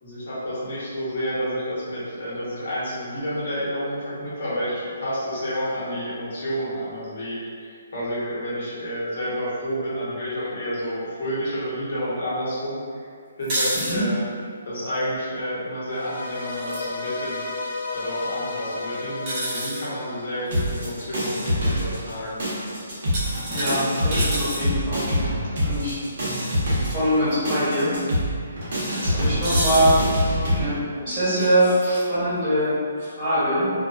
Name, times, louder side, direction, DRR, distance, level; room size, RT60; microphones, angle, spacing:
voice 1, 0.0-13.1 13.4-14.2 14.7-17.5 17.9-22.4, equal, 55° left, -8 dB, 1.0 m, -30 dB
sound 1, 13.4-13.9 16.5-16.9 19.3-19.9 20.5-20.9 23.1-24.6 26.7-26.9 27.3-27.4 29.4-30.0 31.4-32.1, right 1 dB, 25° right, 0.6 m, -29 dB
sound 2, 15.9-21.1, left 3 dB, 80° left, 0.6 m, -33 dB
sound 3, 20.5-22.1 22.4-30.6, equal, 55° right, 0.9 m, -25 dB
voice 2, 23.5-25.1 25.4-26.0 26.4-26.5 26.9-28.0 29.0-30.0 30.5-33.7, equal, 5° right, -19 dB, 1.5 m, -23 dB
2.3 x 2.2 x 2.4 m, 2.2 s
hypercardioid pair, 170°, 0 cm